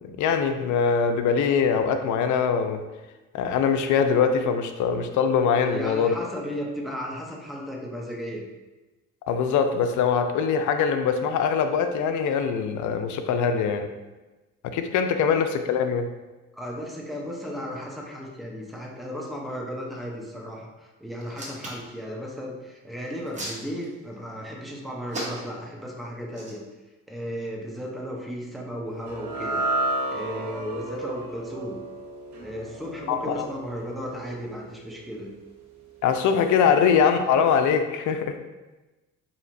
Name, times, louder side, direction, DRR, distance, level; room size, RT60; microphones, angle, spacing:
voice 1, 0.0-2.8 3.3-6.1 9.3-13.9 14.7-16.1 33.1-33.5 36.0-38.3, left 6 dB, 75° left, 7 dB, 0.5 m, -22 dB
voice 2, 5.6-8.4 16.5-26.6 27.1-29.6 30.1-31.8 32.4-35.3 36.7-36.8, equal, ahead, -2 dB, 0.7 m, -35 dB
Hands, 21.2-21.9 23.0-24.1 25.1-25.7 26.3-26.5, right 1 dB, 25° right, 1.0 m, -36 dB
sound 1, 29.1-35.5, right 2 dB, 65° right, 1.0 m, -32 dB
4.2 x 2.8 x 2.6 m, 1.1 s
cardioid pair, 90°, 30 cm